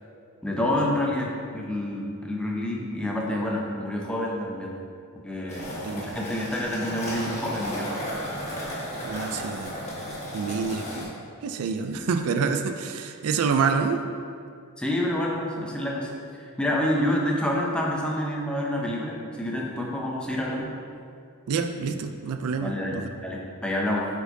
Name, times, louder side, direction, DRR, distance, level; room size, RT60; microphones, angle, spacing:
voice 1, 0.4-4.7 5.2-7.9 10.6-10.9 11.9-12.1 14.8-16.1 16.4-20.7 22.6-23.0 23.2-24.1, left 1 dB, 5° left, -3 dB, 0.7 m, -28 dB
sound 1, 5.5-11.0, equal, 30° left, 1.5 m, -34 dB
voice 2, 9.0-9.7 10.3-11.1 11.4-14.1 21.5-23.1, right 5 dB, 70° right, 6 dB, 0.4 m, -27 dB
8.9 x 4.4 x 2.7 m, 2.3 s
head